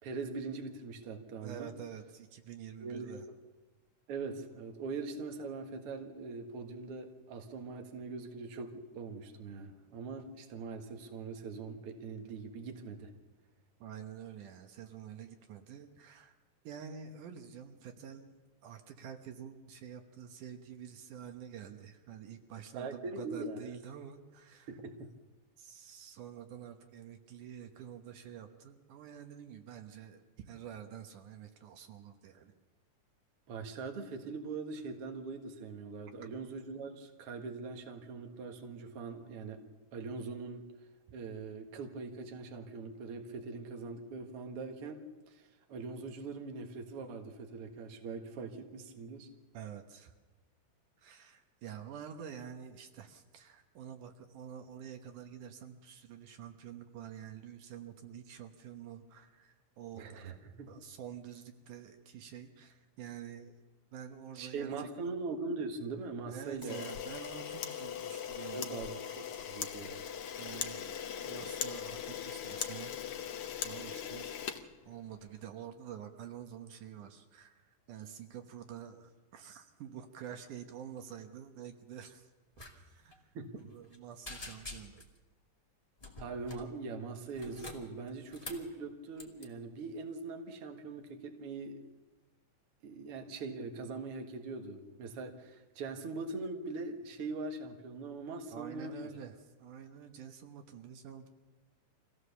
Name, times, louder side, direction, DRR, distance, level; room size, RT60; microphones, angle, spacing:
voice 1, 0.0-1.7 2.8-3.1 4.1-13.1 22.7-23.8 24.7-25.0 33.5-39.6 39.9-40.6 41.1-45.0 45.3-49.3 60.0-60.7 64.4-66.8 68.5-70.0 83.3-83.5 86.2-91.8 92.8-98.9, right 4 dB, 50° right, 4 dB, 2.2 m, -42 dB
voice 2, 1.4-3.3 13.8-16.3 16.6-18.3 18.6-24.8 25.6-32.5 49.5-50.1 51.0-60.3 60.7-63.6 63.9-65.1 66.3-69.0 70.4-74.5 74.9-82.3 82.7-85.0 98.5-101.3, right 9 dB, 75° right, 6 dB, 2.6 m, -48 dB
Camera, 66.6-75.3, left 9 dB, 65° left, 1.4 m, -40 dB
sound 1, 82.5-82.7 83.0-83.2 83.6-84.0 84.2-85.2 86.0-86.7 87.3-88.7 89.2-89.5, left 2 dB, 10° left, 2.1 m, -47 dB
25.0 x 16.5 x 6.9 m, 1.2 s
omnidirectional pair, 3.7 m